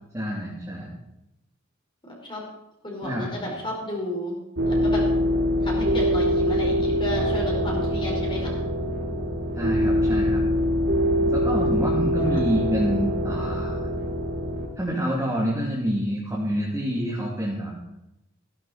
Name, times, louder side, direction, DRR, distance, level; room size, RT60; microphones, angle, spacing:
voice 1, 0.1-0.9 3.0-3.5 9.5-10.5 11.2-13.9 14.8-17.7, equal, 15° right, -5 dB, 2.8 m, -27 dB
voice 2, 2.0-2.4 2.8-4.4 4.6-5.1 5.6-8.6 12.3-12.4, left 1 dB, 25° left, -2 dB, 4.8 m, -32 dB
sound 1, 4.6-14.7, equal, 70° right, 3.9 m, -24 dB
15.5 x 12.0 x 4.4 m, 0.87 s
head